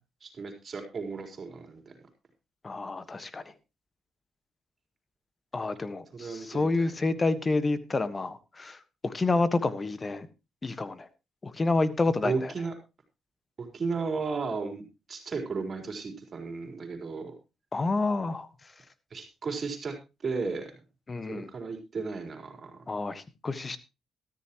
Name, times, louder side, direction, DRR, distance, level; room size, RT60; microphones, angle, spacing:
voice 1, 0.2-1.8 6.1-6.9 12.2-12.7 13.6-14.8 15.1-17.3 19.1-19.9 20.2-20.7 21.3-22.8, right 4 dB, 45° right, 4.2 m, -34 dB
voice 2, 2.6-3.4 5.5-10.3 10.6-11.1 11.4-12.5 17.7-18.5 21.1-21.5 22.9-23.8, left 3 dB, 30° left, 1.4 m, -29 dB
13.5 x 13.5 x 3.0 m
cardioid pair, 80°, 0 cm